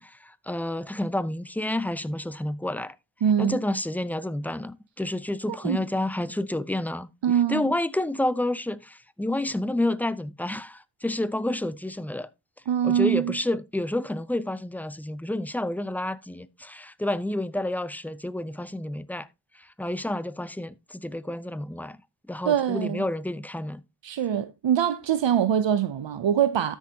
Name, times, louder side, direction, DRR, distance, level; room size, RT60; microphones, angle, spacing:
voice 1, 0.0-2.9 3.4-7.1 7.5-12.3 12.8-19.3 19.6-22.0 22.3-23.8, left 1 dB, 5° left, 0.6 m, -29 dB
voice 2, 3.2-3.6 5.5-5.8 7.2-7.7 12.7-13.4 22.4-23.0 24.0-26.8, right 9 dB, 85° right, 0.6 m, -24 dB
13.0 x 6.4 x 2.8 m
wide cardioid pair, 50°, 43 cm